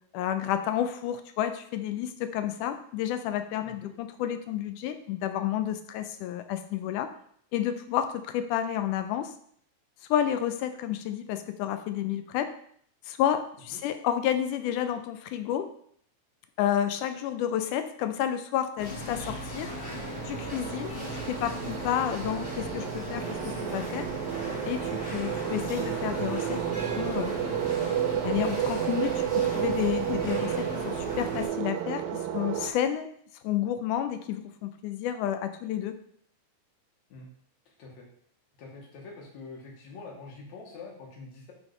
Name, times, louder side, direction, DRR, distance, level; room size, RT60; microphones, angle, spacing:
voice 1, 0.1-7.1 7.5-9.3 10.1-12.5 13.1-15.7 16.6-19.7 20.3-24.1 24.7-27.3 28.2-33.1 33.4-36.0, left 10 dB, 85° left, 9 dB, 2.0 m, -30 dB
sound 1, 18.8-31.5, left 1 dB, 25° left, 2.2 m, -37 dB
sound 2, 19.2-32.7, right 10 dB, 80° right, 1.7 m, -32 dB
voice 2, 38.6-41.5, left 3 dB, 65° left, -1 dB, 2.7 m, -45 dB
5.2 x 5.2 x 4.7 m, 0.63 s
omnidirectional pair, 3.7 m